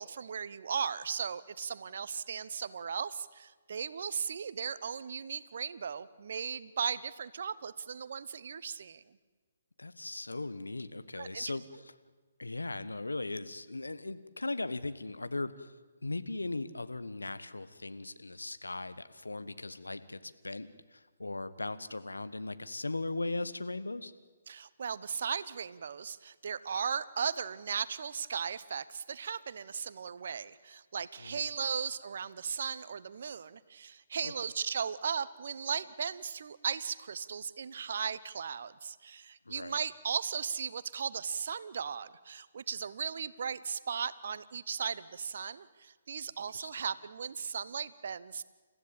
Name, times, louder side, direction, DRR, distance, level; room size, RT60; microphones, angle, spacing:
voice 1, 0.0-9.0 11.2-11.4 24.5-48.4, right 6 dB, 60° right, 17 dB, 1.0 m, -37 dB
voice 2, 9.8-11.9 12.4-15.7 16.0-24.1 31.2-31.5 34.2-34.3 39.5-39.7 46.5-46.7, left 2 dB, 85° left, 12 dB, 1.3 m, -38 dB
29.5 x 15.0 x 8.8 m, 1.4 s
figure-of-eight pair, 135°, 0 cm